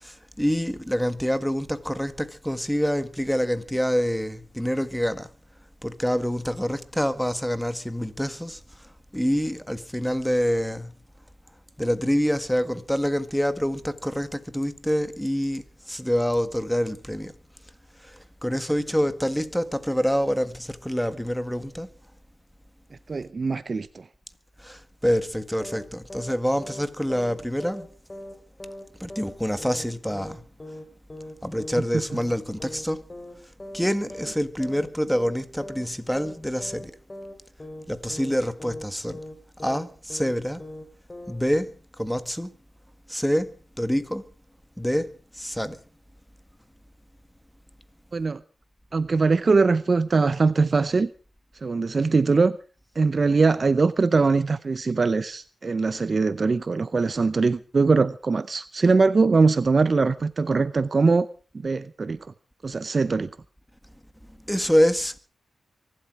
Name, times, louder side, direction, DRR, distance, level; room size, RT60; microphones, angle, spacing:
voice 1, 0.0-5.3 5.8-8.6 9.1-10.9 11.8-17.3 18.0-21.9 24.6-27.9 29.0-30.4 31.4-33.0 33.7-37.0 37.9-39.2 39.6-40.6 41.3-42.5 43.1-44.2 44.8-45.8 64.5-65.2, equal, ahead, 1.7 m, -26 dB
voice 2, 23.1-24.0 31.9-32.0 48.1-48.4 48.9-51.1 51.6-52.5 53.0-61.3 61.5-62.2 62.6-63.3, right 4 dB, 45° right, 0.7 m, -22 dB
sound 1, 25.6-25.9 26.1-26.4 26.6-26.9 27.1-27.4 27.6-27.9 28.1-28.4 28.6-28.9 29.1-29.4 29.6-29.9 30.1-30.4 30.6-30.9 31.1-31.4 31.6-31.9 32.1-32.4 32.6-32.9 33.1-33.4 33.6-33.9 34.1-34.4 34.6-34.9 35.1-35.4 35.6-35.9 36.1-36.4 36.6-36.9 37.1-37.4 37.6-37.9 38.1-38.4 38.6-38.9 39.1-39.4 39.6-39.9 40.1-40.4 40.6-40.9 41.1-41.4, left 1 dB, 25° left, 3.8 m, -39 dB
24.0 x 12.0 x 4.8 m
cardioid pair, 75°, 0 cm